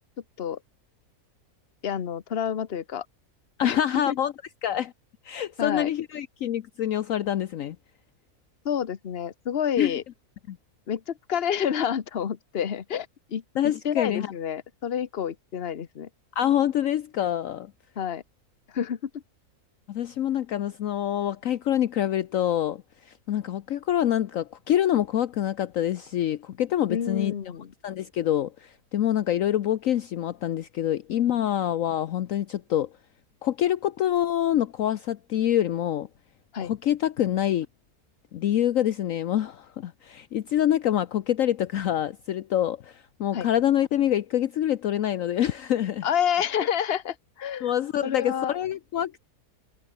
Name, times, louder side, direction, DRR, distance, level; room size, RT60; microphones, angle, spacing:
voice 1, 1.8-3.1 3.6-4.2 5.6-5.9 8.6-10.0 10.9-13.4 13.8-16.1 18.0-18.2 18.7-19.1 26.9-27.7 36.5-36.7 43.3-43.5 46.0-47.7 48.0-48.6, left 8 dB, 45° left, 1.2 m, -29 dB
voice 2, 3.6-4.3 4.6-4.9 5.2-7.8 9.8-10.0 10.5-10.6 13.6-14.3 16.4-17.7 19.9-27.3 27.8-32.9 33.4-36.1 36.6-37.7 38.3-46.0 47.6-49.3, left 11 dB, 65° left, 1.1 m, -26 dB
omnidirectional pair, 1.6 m